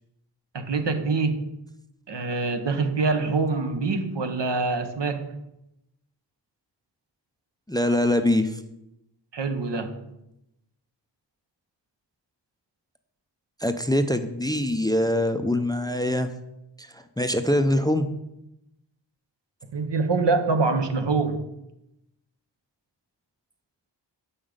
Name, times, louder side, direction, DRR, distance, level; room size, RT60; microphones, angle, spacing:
voice 1, 0.5-1.5 2.1-5.3 9.3-10.1 19.7-21.5, right 3 dB, 70° right, 7 dB, 0.9 m, -25 dB
voice 2, 7.7-8.6 13.6-16.3 16.8-18.1, left 1 dB, 10° left, 9 dB, 0.5 m, -23 dB
7.0 x 5.6 x 5.1 m, 0.87 s
wide cardioid pair, 45°, 44 cm